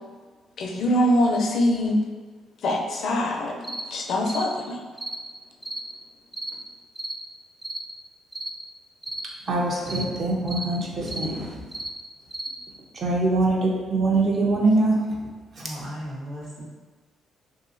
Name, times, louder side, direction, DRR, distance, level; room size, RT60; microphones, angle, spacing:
voice 1, 0.6-2.0 2.6-3.6 3.9-4.8, left 1 dB, 65° left, 2 dB, 0.4 m, -23 dB
sound 1, 3.6-3.9 4.3-4.5 5.0-5.2 5.6-5.8 6.3-6.6 7.0-7.2 7.6-7.8 8.3-8.5 9.0-9.3 9.9-10.1 10.5-10.7 11.1-11.3 11.7-11.9 12.3-12.5, right 1 dB, 15° right, 0.3 m, -33 dB
voice 2, 9.5-11.6 12.9-15.1, right 2 dB, 50° right, -2 dB, 0.6 m, -23 dB
voice 3, 15.6-16.6, equal, 90° right, -10 dB, 1.3 m, -36 dB
2.7 x 2.7 x 2.5 m, 1.4 s
cardioid pair, 90°, 0 cm